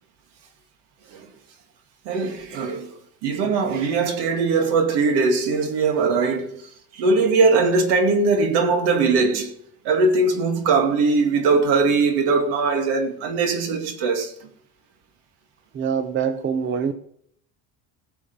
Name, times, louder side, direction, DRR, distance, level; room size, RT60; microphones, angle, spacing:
voice 1, 2.1-3.0 3.2-6.6 6.9-9.5 9.8-14.3, right 4 dB, 80° right, 2.3 m, -20 dB
voice 2, 15.7-16.9, right 7 dB, 30° right, 0.7 m, -24 dB
18.0 x 6.9 x 5.4 m
cardioid pair, 145°, 40 cm